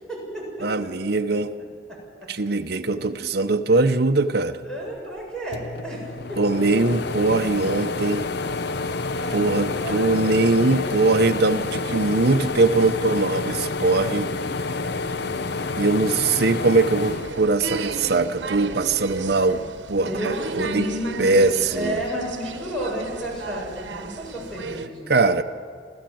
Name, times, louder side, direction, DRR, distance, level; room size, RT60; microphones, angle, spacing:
voice 1, 0.1-0.7 1.3-1.4 1.9-2.0 4.6-6.4 9.1-9.4 9.8-10.3 10.6-10.9 14.6-16.1 19.9-25.1, equal, 5° left, -4 dB, 7.2 m, -32 dB
voice 2, 0.6-1.5 2.3-4.6 6.4-8.3 9.3-14.3 15.8-19.6 19.9-20.9 21.2-22.0 25.1-25.4, right 3 dB, 60° right, 6 dB, 0.9 m, -21 dB
Bathroom Exhaust Fan, 5.2-5.3 5.5-18.1 18.5-19.7, left 3 dB, 65° left, 0.7 m, -29 dB
sound 1, 17.0-24.9, right 4 dB, 85° right, 1.1 m, -34 dB
28.0 x 14.5 x 7.8 m, 2.2 s
head